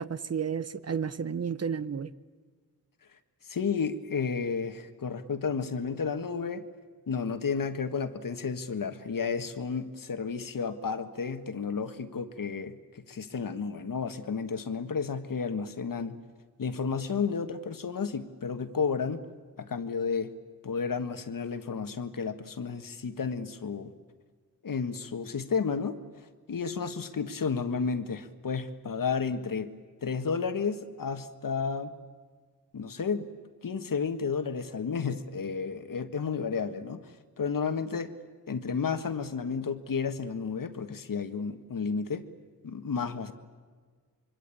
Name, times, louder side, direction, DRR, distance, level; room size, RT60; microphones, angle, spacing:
voice 1, 0.0-2.1, right 7 dB, 45° right, 15 dB, 0.9 m, -32 dB
voice 2, 3.5-6.7 7.1-16.2 16.6-19.3 19.6-20.3 20.6-23.9 24.6-26.0 26.5-31.9 32.7-33.3 33.6-37.1 37.4-38.2 38.5-42.3 42.6-43.3, left 5 dB, 65° left, 9 dB, 1.7 m, -32 dB
25.5 x 24.5 x 8.6 m, 1.5 s
wide cardioid pair, 135°, 36 cm